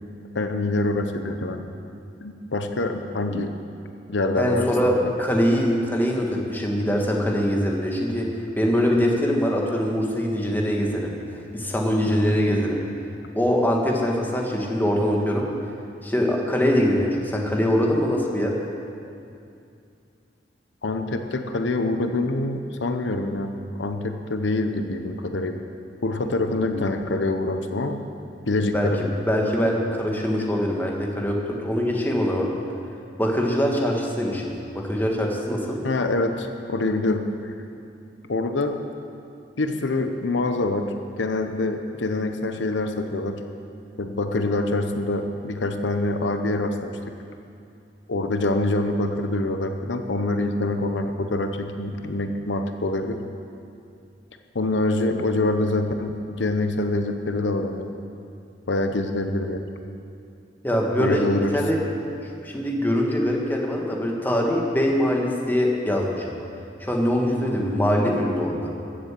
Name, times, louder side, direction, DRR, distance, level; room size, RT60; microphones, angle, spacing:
voice 1, 0.3-1.6 2.2-3.5 4.1-5.0 12.1-12.4 20.8-23.5 23.8-25.6 26.0-28.0 28.5-29.2 35.8-37.3 38.3-38.8 39.6-40.9 41.2-43.4 44.0-47.1 48.1-53.2 54.5-58.0 58.7-59.6 61.0-61.6, left 2 dB, 90° left, 6 dB, 0.8 m, -25 dB
voice 2, 4.3-12.8 13.3-15.5 16.0-18.5 26.3-26.7 28.7-32.5 33.2-35.8 60.6-61.8 62.2-66.3 66.8-68.7, equal, 10° left, 0 dB, 1.5 m, -23 dB
15.0 x 7.7 x 7.5 m, 2.5 s
head